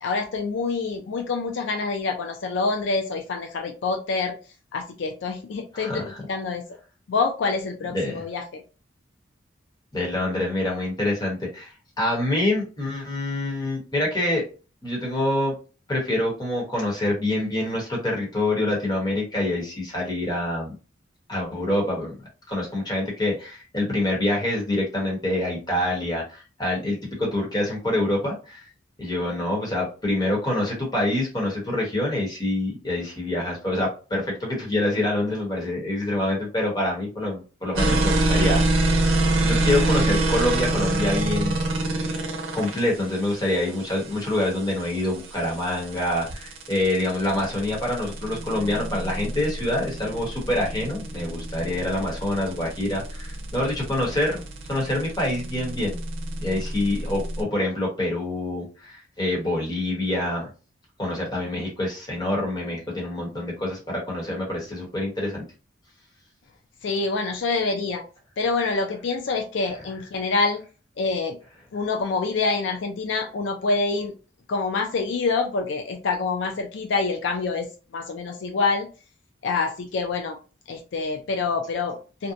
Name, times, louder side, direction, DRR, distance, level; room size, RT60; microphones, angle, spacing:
voice 1, 0.0-4.4 4.7-6.6 7.1-8.6 66.8-68.0 68.4-70.6 71.0-71.4 71.7-74.1 74.5-78.9 79.4-80.4 80.7-82.3, left 4 dB, 65° left, 4 dB, 0.4 m, -26 dB
voice 2, 5.7-6.2 7.9-8.2 9.9-14.4 14.8-15.5 15.9-20.7 21.3-22.2 22.5-28.6 29.0-38.8 39.4-42.0 42.5-54.4 54.7-56.0 56.4-60.5 61.0-65.4, left 1 dB, 20° left, -2 dB, 1.1 m, -26 dB
sound 1, 37.8-57.4, right 2 dB, 90° right, 0.7 m, -26 dB
2.7 x 2.1 x 2.4 m, 0.34 s
head